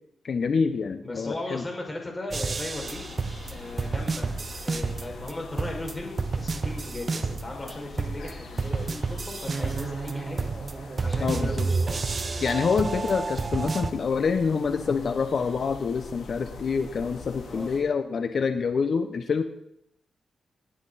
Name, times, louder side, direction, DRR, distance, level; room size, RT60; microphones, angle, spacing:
voice 1, 0.2-1.6 11.2-11.7 12.4-19.4, left 5 dB, 65° left, 9 dB, 1.0 m, -26 dB
voice 2, 1.0-3.0 3.5-4.4 4.6-10.5 11.0-12.5 17.4-17.8, left 2 dB, 25° left, -1 dB, 5.9 m, -37 dB
sound 1, 2.3-5.3 5.6-7.7 8.0-13.9, right 4 dB, 45° right, 0.9 m, -30 dB
sound 2, 2.7-17.8, left 4 dB, 85° left, 3.4 m, -44 dB
19.0 x 9.7 x 4.2 m, 0.79 s
cardioid pair, 55°, 0 cm